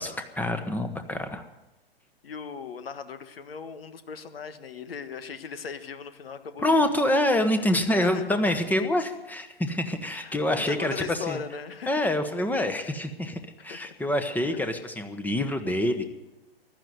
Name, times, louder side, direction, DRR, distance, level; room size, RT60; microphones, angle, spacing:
voice 1, 0.0-1.4 6.6-11.4 11.9-16.1, left 1 dB, 5° left, 8 dB, 1.1 m, -26 dB
voice 2, 2.2-6.9 7.9-8.6 10.0-12.0 13.7-13.8, left 6 dB, 70° left, 11 dB, 1.4 m, -38 dB
15.0 x 11.5 x 7.8 m, 1.0 s
figure-of-eight pair, 115°, 30 cm